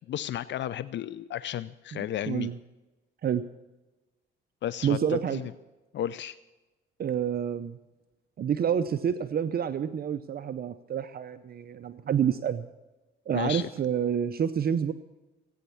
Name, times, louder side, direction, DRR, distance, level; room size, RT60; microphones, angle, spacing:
voice 1, 0.1-2.5 4.6-5.5 5.9-6.4 13.3-13.7, left 11 dB, 65° left, 16 dB, 0.5 m, -33 dB
voice 2, 1.9-2.6 3.2-3.4 4.8-5.4 7.0-7.8 8.4-12.7 13.3-14.9, right 8 dB, 50° right, 11 dB, 0.7 m, -28 dB
17.0 x 9.3 x 7.1 m, 1.1 s
cardioid pair, 90°, 20 cm